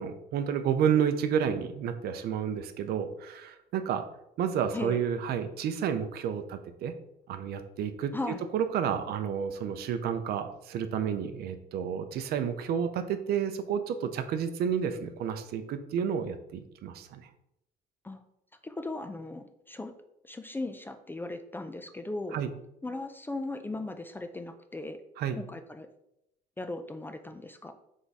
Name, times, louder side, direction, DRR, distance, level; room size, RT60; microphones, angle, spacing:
voice 1, 0.0-4.0 4.4-6.9 7.3-8.1 8.5-17.3 22.3-22.5 25.2-25.4, right 8 dB, 70° right, 8 dB, 0.5 m, -30 dB
voice 2, 18.6-19.9 20.2-22.4 22.8-25.0 25.4-25.9 26.6-27.7, left 2 dB, 10° left, 8 dB, 0.3 m, -37 dB
3.6 x 3.4 x 4.1 m, 0.79 s
cardioid pair, 110°, 17 cm